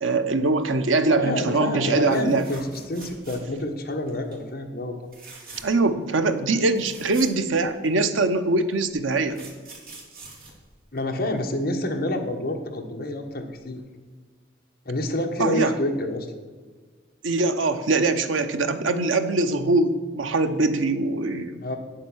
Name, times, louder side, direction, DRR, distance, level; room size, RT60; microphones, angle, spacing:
voice 1, 0.0-2.5 5.6-9.4 15.4-15.7 17.2-21.5, right 3 dB, 90° right, 9 dB, 0.8 m, -22 dB
voice 2, 1.2-5.0 10.9-13.8 14.8-16.3 21.6-21.8, left 1 dB, 50° left, 3 dB, 1.3 m, -28 dB
sound 1, 2.1-3.7 4.1-4.4 5.0-5.9 6.3-6.4 6.6-8.1 8.9-11.4 13.3-13.5 13.8-13.9, right 3 dB, 50° right, 2.4 m, -45 dB
8.6 x 7.5 x 6.3 m, 1.5 s
head